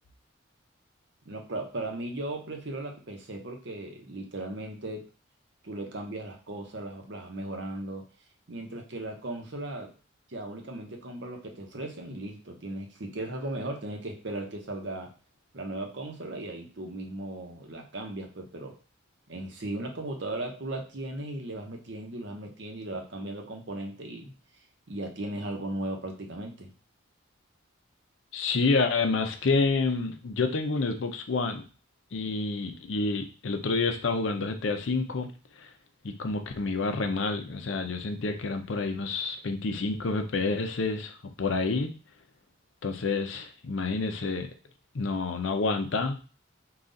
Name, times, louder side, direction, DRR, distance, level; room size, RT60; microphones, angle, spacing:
voice 1, 1.3-5.1 5.6-8.1 8.5-9.9 10.3-15.1 15.5-18.7 19.3-24.3 24.9-26.7, right 1 dB, 60° right, 3 dB, 0.8 m, -37 dB
voice 2, 28.3-31.6 32.1-35.3 35.6-35.7 36.0-41.1 41.4-41.9 42.8-44.5 44.9-46.2, left 3 dB, 75° left, 7 dB, 0.6 m, -28 dB
3.9 x 2.4 x 3.8 m, 0.35 s
head